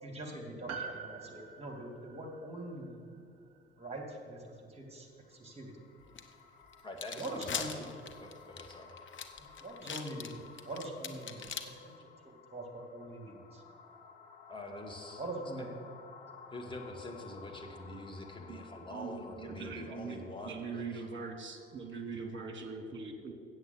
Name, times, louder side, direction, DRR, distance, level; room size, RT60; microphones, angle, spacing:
voice 1, 0.0-3.0 3.8-4.4 4.7-5.7 7.2-7.9 9.4-11.5 11.8-11.9 12.5-13.6 15.2-15.7, right 1 dB, 20° right, 2 dB, 2.5 m, -43 dB
Piano, 0.7-5.3 5.5-5.6, right 5 dB, 55° right, 0.9 m, -48 dB
sound 1, 5.1-22.3, left 6 dB, 75° left, 1.0 m, -56 dB
sound 2, 6.2-6.3 6.7-11.6, left 7 dB, 40° left, 0.9 m, -40 dB
voice 2, 6.8-7.9 8.2-9.0 14.5-15.2 16.5-21.0, left 1 dB, 15° left, 2 dB, 2.0 m, -45 dB
voice 3, 18.9-20.2 20.5-23.3, right 4 dB, 40° right, 3 dB, 1.7 m, -42 dB
7.9 x 7.8 x 7.8 m, 2.3 s
figure-of-eight pair, 50°, 31 cm